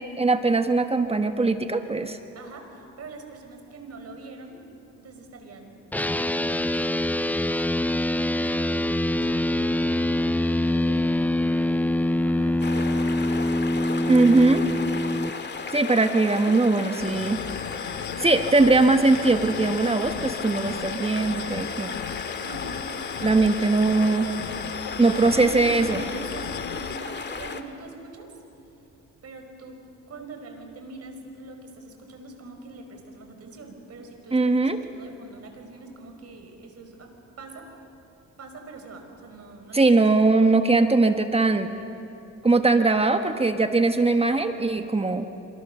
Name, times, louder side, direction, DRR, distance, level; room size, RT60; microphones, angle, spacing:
voice 1, 0.2-2.2 14.1-14.6 15.7-17.4 18.2-21.9 23.2-24.3 25.0-26.0 34.3-34.8 39.7-41.7 42.4-45.2, right 3 dB, 20° right, 7 dB, 1.3 m, -20 dB
voice 2, 2.4-4.6 5.0-7.5 7.9-11.6 12.2-13.3 13.9-14.3 22.4-22.9 25.0-28.3 29.2-29.8 30.1-34.5 34.9-37.1 37.4-37.7 38.4-39.8, right 3 dB, 55° right, 5 dB, 5.1 m, -43 dB
sound 1, 5.9-15.3, left 1 dB, 5° left, 0.5 m, -24 dB
sound 2, 12.6-27.6, left 4 dB, 35° left, 1.9 m, -35 dB
sound 3, 17.0-27.0, left 10 dB, 75° left, 1.0 m, -36 dB
27.0 x 26.5 x 6.8 m, 2.8 s
cardioid pair, 90°, 30 cm